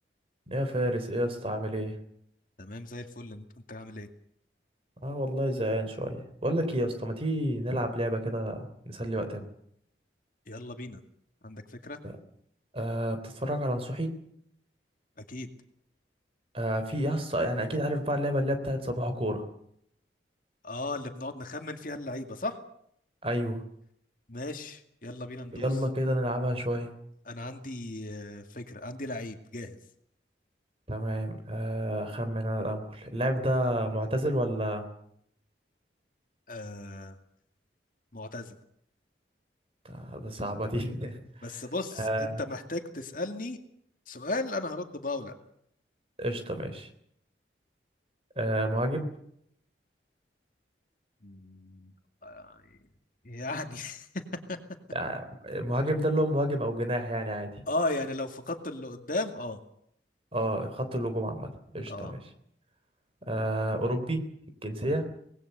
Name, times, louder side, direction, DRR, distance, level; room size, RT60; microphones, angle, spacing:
voice 1, 0.5-2.0 5.0-9.4 12.0-12.1 12.7-14.2 16.5-19.5 23.2-23.6 25.5-26.9 30.9-34.9 39.9-41.2 41.5-41.6 42.0-42.4 46.2-46.9 48.4-49.1 54.9-57.5 60.3-62.2 63.3-64.2 64.6-65.1, equal, 30° right, 8 dB, 3.5 m, -30 dB
voice 2, 2.6-4.1 10.5-11.0 11.4-12.0 15.3-15.5 20.6-22.6 24.3-25.8 27.3-29.8 36.5-37.2 38.1-38.5 41.4-43.6 44.1-45.3 51.2-51.9 52.2-52.8 53.2-54.1 54.5-54.6 57.7-59.6 61.9-62.1, left 2 dB, 45° left, 5 dB, 2.3 m, -36 dB
25.5 x 20.0 x 6.8 m, 0.69 s
head